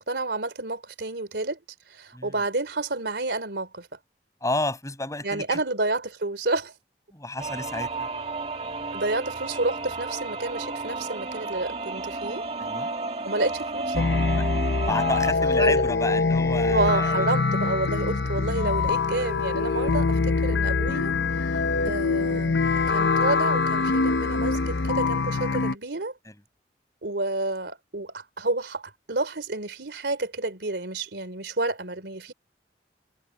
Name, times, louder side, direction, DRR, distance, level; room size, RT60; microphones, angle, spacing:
voice 1, 0.0-1.6 1.9-3.9 5.2-6.7 8.9-12.4 13.2-14.1 15.6-15.8 16.7-21.1 21.4-21.5 21.8-26.1 27.0-28.8 29.1-32.3, right 2 dB, 75° right, 3.2 m, -29 dB
voice 2, 4.4-5.6 7.1-8.1 12.6-12.9 14.9-17.3 18.8-19.1, left 2 dB, 20° left, 7.3 m, -31 dB
sound 1, 7.4-15.3, right 3 dB, 35° right, 2.3 m, -32 dB
sound 2, 13.9-25.7, left 4 dB, 85° left, 0.7 m, -24 dB
head